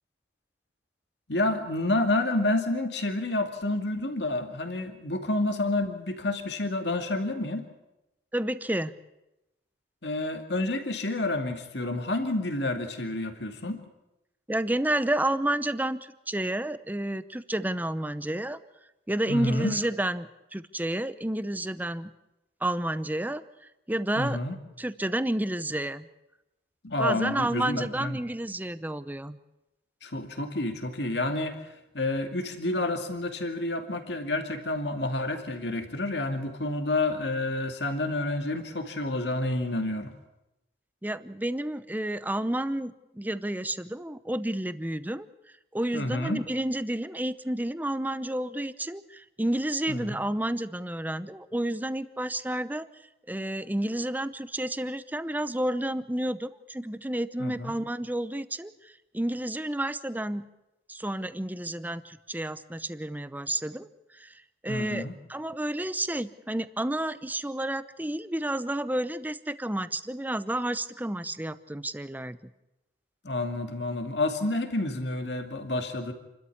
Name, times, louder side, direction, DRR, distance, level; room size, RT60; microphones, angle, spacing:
voice 1, 1.3-7.6 10.0-13.8 19.3-19.7 24.2-24.5 26.8-28.2 30.0-40.1 45.9-46.4 49.9-50.2 57.4-57.7 64.7-65.1 73.2-76.1, left 2 dB, 70° left, 5 dB, 2.4 m, -29 dB
voice 2, 8.3-8.9 14.5-18.6 19.1-22.1 22.6-24.4 24.8-26.1 27.0-29.4 41.0-45.3 45.7-52.9 53.3-60.5 60.9-72.5, right 1 dB, 10° right, 13 dB, 0.7 m, -30 dB
28.5 x 13.0 x 8.6 m, 0.94 s
head